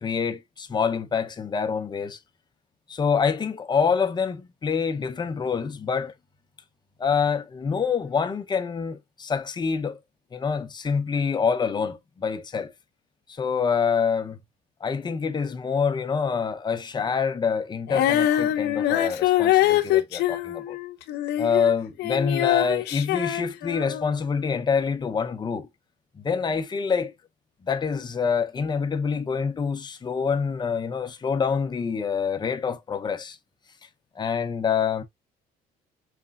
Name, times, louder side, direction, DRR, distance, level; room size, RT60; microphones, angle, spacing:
voice 1, 0.0-2.2 2.9-6.1 7.0-10.0 10.3-12.7 13.3-14.4 14.8-20.8 21.4-25.7 26.2-27.1 27.6-33.4 34.2-35.0, left 6 dB, 25° left, 0.7 m, -26 dB
Female singing, 17.9-21.7 22.0-24.1, left 13 dB, 80° left, 0.6 m, -23 dB
5.0 x 3.3 x 2.4 m
cardioid pair, 110°, 17 cm